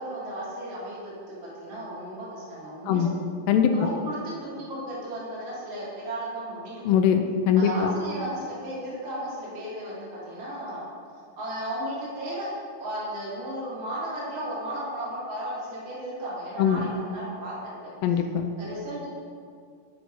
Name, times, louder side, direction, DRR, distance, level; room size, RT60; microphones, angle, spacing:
voice 1, 0.0-3.2 3.7-6.8 7.6-10.9 11.4-12.5 12.8-17.7 18.6-19.1, right 1 dB, 35° right, -7 dB, 2.9 m, -35 dB
voice 2, 6.9-7.9 16.6-16.9 18.0-18.5, left 8 dB, 90° left, 5 dB, 2.3 m, -22 dB
10.5 x 6.3 x 4.6 m, 2.2 s
omnidirectional pair, 3.9 m